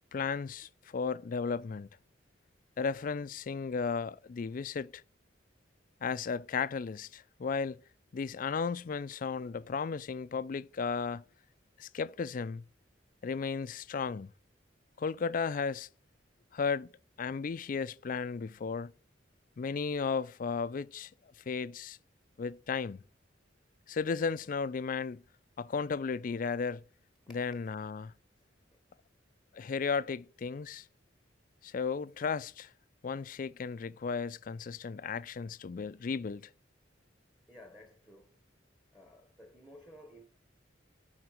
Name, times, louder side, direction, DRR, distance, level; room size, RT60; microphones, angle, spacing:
voice 1, 0.1-1.9 2.8-5.0 6.0-7.8 8.1-11.2 11.8-12.6 13.2-14.3 15.0-15.9 16.5-16.9 17.2-18.9 19.6-21.1 21.5-22.0 22.4-23.0 23.9-25.2 25.6-26.8 27.3-28.1 29.5-30.8 31.6-32.7 33.0-36.5, left 5 dB, 45° left, 0.4 m, -34 dB
voice 2, 27.2-27.6 37.5-38.3 38.9-40.2, left 1 dB, 5° right, 1.2 m, -54 dB
10.5 x 3.9 x 6.4 m
head